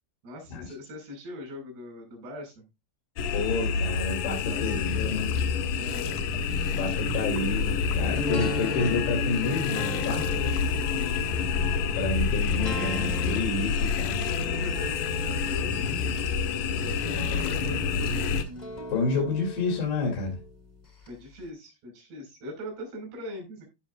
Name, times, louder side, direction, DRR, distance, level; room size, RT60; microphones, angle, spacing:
voice 1, 0.2-2.6 4.4-5.1 5.8-6.2 10.3-11.4 13.0-13.2 14.4-15.8 16.6-18.3 21.0-23.6, left 2 dB, 80° right, 1 dB, 7.1 m, -41 dB
sound 1, 3.2-18.4, left 5 dB, 70° left, 2.0 m, -28 dB
voice 2, 3.3-5.4 6.7-10.3 11.9-14.2 18.9-20.4, left 4 dB, 85° left, 0 dB, 4.6 m, -29 dB
sound 2, 8.1-21.1 21.5-21.6, left 1 dB, 35° left, 0.7 m, -39 dB
15.0 x 5.8 x 2.5 m, 0.24 s
omnidirectional pair, 4.8 m